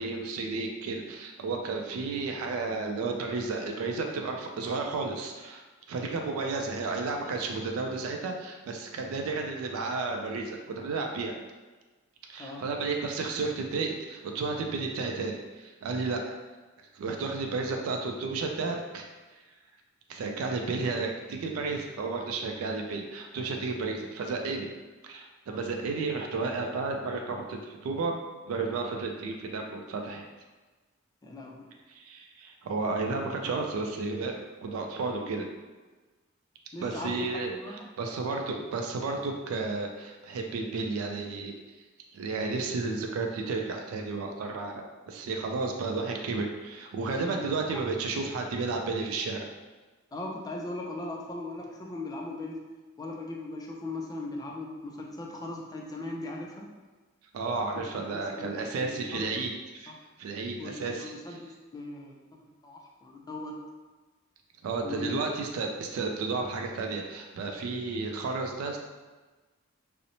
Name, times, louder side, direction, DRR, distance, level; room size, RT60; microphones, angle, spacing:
voice 1, 0.0-11.3 12.3-16.4 16.9-19.1 20.1-24.7 25.0-28.1 28.5-30.2 31.9-35.5 36.8-41.5 42.1-49.5 57.3-59.9 60.2-61.1 64.6-68.8, right 3 dB, 85° right, 2 dB, 0.3 m, -32 dB
voice 2, 31.2-31.7 36.7-37.9 47.3-47.8 50.1-52.6 53.0-56.7 57.7-59.3 59.9-60.0 60.6-63.6 64.8-65.2, left 2 dB, 20° left, -1 dB, 0.3 m, -39 dB
2.8 x 2.0 x 2.6 m, 1.3 s
head